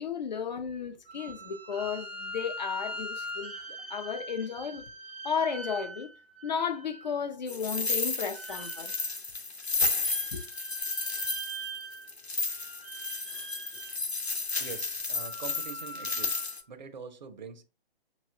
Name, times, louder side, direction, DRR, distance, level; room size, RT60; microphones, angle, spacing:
voice 1, 0.0-3.5 3.9-4.8 5.2-6.1 6.4-8.9 10.3-10.4, left 6 dB, 45° left, 0.6 m, -33 dB
sound 1, 1.1-7.3 8.3-9.1 9.6-12.2 12.5-14.0 14.5-16.5, right 1 dB, 15° right, 0.4 m, -42 dB
sound 2, 7.5-16.6, left 3 dB, 85° left, 0.9 m, -32 dB
voice 2, 14.6-16.4 16.7-17.6, right 6 dB, 45° right, 0.8 m, -44 dB
5.6 x 3.0 x 2.6 m
figure-of-eight pair, 130°, 31 cm